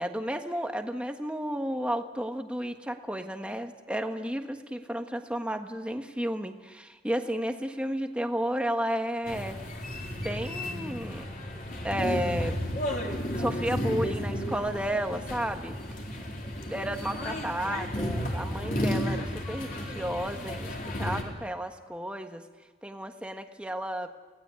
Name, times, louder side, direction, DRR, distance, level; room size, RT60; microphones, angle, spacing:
voice 1, 0.0-9.6 10.2-11.2 11.8-12.6 13.4-15.7 16.6-22.4 22.8-24.1, equal, 5° right, 5 dB, 1.5 m, -32 dB
sound 1, 9.3-21.2, equal, 45° left, 4.1 m, -33 dB
30.0 x 18.5 x 8.4 m, 1.3 s
head